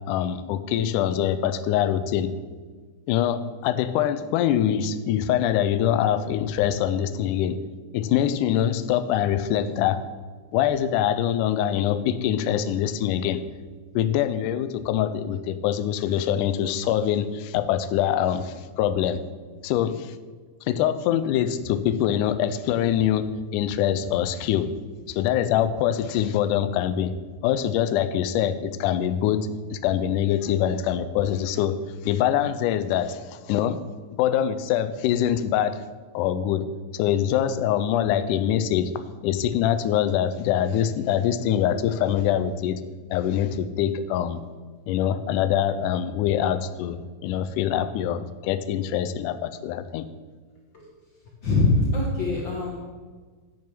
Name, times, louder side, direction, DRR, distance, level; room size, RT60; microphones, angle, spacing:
voice 1, 0.1-2.3 3.1-7.6 7.9-10.1 10.5-13.4 13.9-19.2 19.6-20.1 20.7-24.7 25.1-27.1 27.4-31.8 32.0-33.8 34.2-35.8 36.1-36.7 36.9-38.9 39.2-42.8 43.1-44.4 44.9-50.1, left 10 dB, 85° left, 12 dB, 2.1 m, -24 dB
voice 2, 51.4-52.8, left 2 dB, 50° left, -2 dB, 1.5 m, -23 dB
8.6 x 6.3 x 6.0 m, 1.5 s
omnidirectional pair, 3.7 m